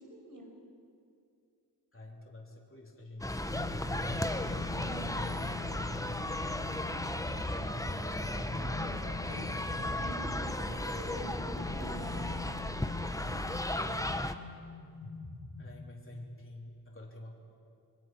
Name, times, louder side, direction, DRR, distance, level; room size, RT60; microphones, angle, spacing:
voice 1, 0.1-0.5 4.8-5.3 7.4-12.4, right 2 dB, 55° right, 1 dB, 5.2 m, -47 dB
voice 2, 1.9-6.4 15.6-17.4, left 1 dB, 35° left, -2 dB, 3.4 m, -50 dB
sound 1, 3.2-14.3, left 1 dB, 10° left, 0.9 m, -35 dB
sound 2, 3.5-16.3, left 4 dB, 90° left, 2.8 m, -44 dB
Wind instrument woodwind instrument, 3.5-7.7, equal, 35° right, 4.5 m, -58 dB
29.5 x 22.0 x 6.1 m, 2.4 s
wide cardioid pair, 95°, 38 cm